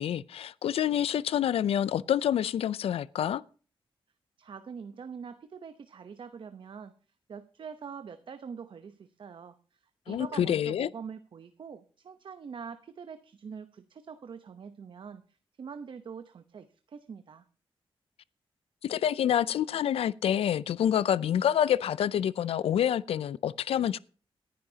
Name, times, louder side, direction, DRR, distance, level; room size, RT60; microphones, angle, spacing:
voice 1, 0.0-3.4 10.1-10.9 18.8-24.0, left 10 dB, 85° left, 0.5 m, -27 dB
voice 2, 4.4-6.9 7.3-17.4, right 6 dB, 60° right, 0.9 m, -44 dB
18.5 x 10.5 x 2.8 m
cardioid pair, 90°, 10 cm